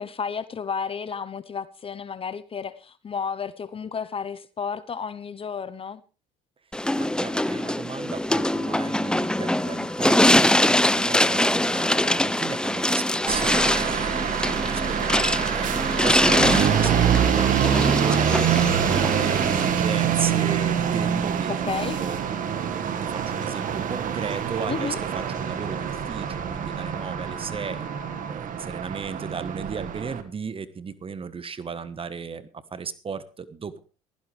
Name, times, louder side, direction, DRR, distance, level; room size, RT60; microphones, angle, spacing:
voice 1, 0.0-6.0 21.5-22.0 24.7-25.0, left 6 dB, 35° left, 1.0 m, -32 dB
sound 1, 6.7-19.7, left 1 dB, 5° left, 0.9 m, -23 dB
voice 2, 7.0-18.5 18.9-21.7 22.0-22.2 22.7-27.9 28.3-33.8, right 5 dB, 35° right, 1.4 m, -35 dB
sound 2, 8.4-28.4, left 4 dB, 80° left, 4.5 m, -45 dB
sound 3, 13.3-30.2, right 8 dB, 60° right, 1.9 m, -25 dB
15.5 x 15.0 x 3.4 m
supercardioid pair, 70°, 16 cm